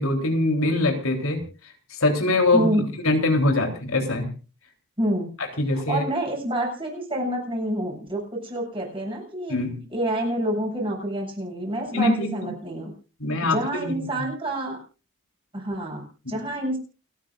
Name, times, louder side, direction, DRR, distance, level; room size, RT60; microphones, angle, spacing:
voice 1, 0.0-1.4 1.9-4.3 5.4-6.0 9.5-9.8 11.9-12.5 13.2-13.9 16.3-16.4, left 2 dB, 80° left, 3 dB, 3.8 m, -23 dB
voice 2, 2.5-2.9 5.0-5.3 5.7-9.6 9.9-12.9 13.4-14.8 15.5-16.8, right 1 dB, 25° right, -1 dB, 7.7 m, -28 dB
29.5 x 10.5 x 2.6 m, 0.35 s
head